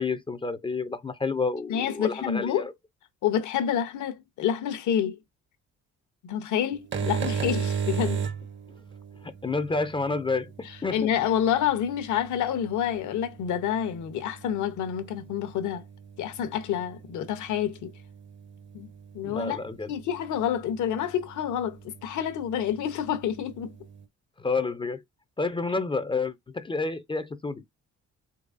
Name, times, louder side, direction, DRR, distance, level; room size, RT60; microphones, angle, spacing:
voice 1, 0.0-2.7 9.2-11.1 19.2-19.9 24.4-25.0 25.4-27.6, left 3 dB, 15° left, 0.4 m, -29 dB
voice 2, 1.7-2.6 3.2-5.2 6.2-8.3 10.9-15.8 16.2-17.9 18.7-18.9 19.1-19.6 19.9-23.7, left 9 dB, 75° left, 0.8 m, -28 dB
sound 1, 6.7-24.0, right 6 dB, 40° right, 0.6 m, -38 dB
3.9 x 2.9 x 2.4 m
cardioid pair, 90°, 30 cm